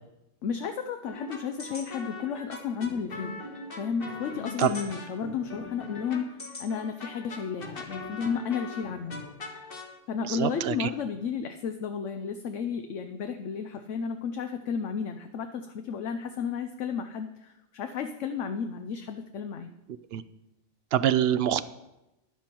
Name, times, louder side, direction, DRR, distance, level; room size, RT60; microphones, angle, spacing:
voice 1, 0.4-3.3 3.7-9.2 10.1-19.7, left 6 dB, 70° left, 7 dB, 1.0 m, -33 dB
sound 1, 1.0-9.9, left 3 dB, 45° left, 1.6 m, -41 dB
voice 2, 10.3-10.9 20.1-20.2 20.9-21.7, right 10 dB, 60° right, 15 dB, 0.7 m, -25 dB
13.0 x 10.0 x 4.5 m, 0.94 s
omnidirectional pair, 1.3 m